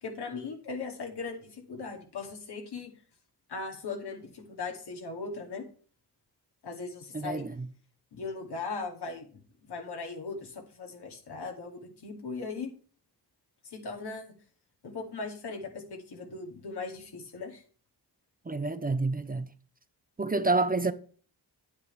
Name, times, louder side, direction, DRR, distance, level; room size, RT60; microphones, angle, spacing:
voice 1, 0.0-2.9 3.5-5.6 6.6-7.5 8.1-9.3 9.7-12.7 13.6-14.3 14.8-17.6, left 4 dB, 80° left, 2.6 m, -38 dB
voice 2, 7.1-7.5 18.5-19.5 20.2-20.9, right 3 dB, 20° right, 0.7 m, -28 dB
9.4 x 9.3 x 3.3 m
cardioid pair, 70°, 40 cm